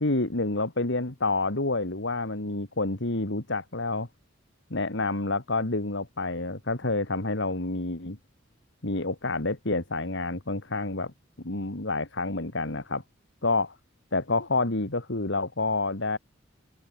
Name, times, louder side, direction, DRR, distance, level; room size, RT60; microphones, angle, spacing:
voice 1, 0.0-4.1 4.7-8.2 8.8-11.1 11.4-13.0 13.4-13.7 14.1-16.2, left 2 dB, 65° left, 2.4 m, -28 dB
open air
head